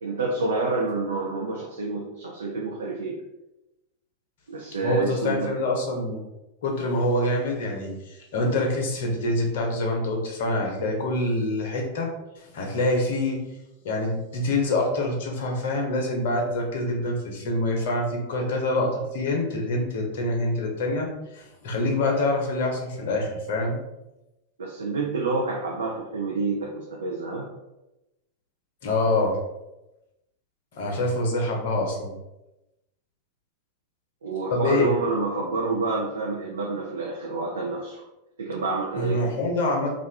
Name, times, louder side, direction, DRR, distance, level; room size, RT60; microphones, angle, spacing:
voice 1, 0.0-3.2 4.5-5.5 24.6-27.5 34.2-38.0 38.4-39.2, right 3 dB, 70° right, -2 dB, 0.4 m, -28 dB
voice 2, 4.8-6.2 6.6-12.1 12.4-13.4 13.8-23.8 28.8-29.3 30.8-32.1 34.5-34.9 39.0-39.9, left 2 dB, 55° left, 1 dB, 0.7 m, -26 dB
2.5 x 2.3 x 3.2 m, 0.95 s
figure-of-eight pair, 90°, 0 cm